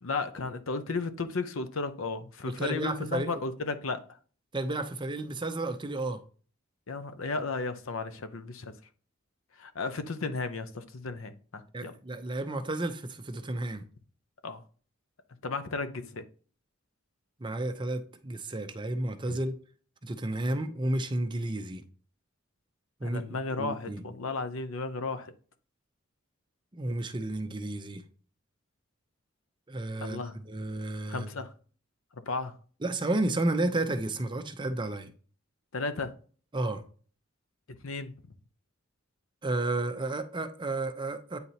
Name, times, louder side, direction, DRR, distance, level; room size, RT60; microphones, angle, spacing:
voice 1, 0.0-4.0 6.9-8.7 9.6-11.9 14.4-14.6 15.4-16.2 19.3-19.4 23.0-25.3 30.0-30.3 31.1-31.5 32.3-32.6 35.7-36.1 37.8-38.1, left 3 dB, 80° left, 0.7 m, -34 dB
voice 2, 2.5-3.4 4.5-6.2 11.7-13.8 17.4-19.6 20.0-21.8 23.0-23.2 23.6-24.0 26.7-28.0 29.7-31.3 32.8-35.1 36.5-36.8 39.4-41.4, right 2 dB, 25° right, 0.6 m, -32 dB
9.0 x 4.0 x 2.8 m
head